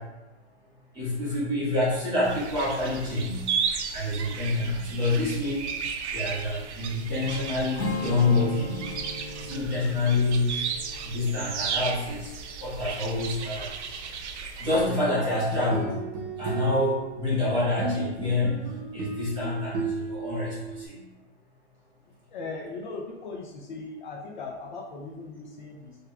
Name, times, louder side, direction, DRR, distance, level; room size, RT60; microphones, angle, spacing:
voice 1, 0.9-3.6 3.9-5.6 6.1-8.9 9.4-10.5 11.0-12.3 12.6-13.7 14.6-15.9 16.4-18.6 18.9-21.0, left 2 dB, 15° right, -8 dB, 1.3 m, -27 dB
sound 1, 2.2-14.9, right 6 dB, 80° right, 0.6 m, -34 dB
Strum, 7.8-13.1, left 2 dB, 80° left, 1.1 m, -38 dB
sound 2, 15.3-20.9, right 3 dB, 35° right, 0.8 m, -34 dB
voice 2, 22.3-26.0, left 3 dB, 45° left, 0 dB, 0.5 m, -38 dB
6.2 x 2.4 x 2.3 m, 1.1 s
hypercardioid pair, 165°, 33 cm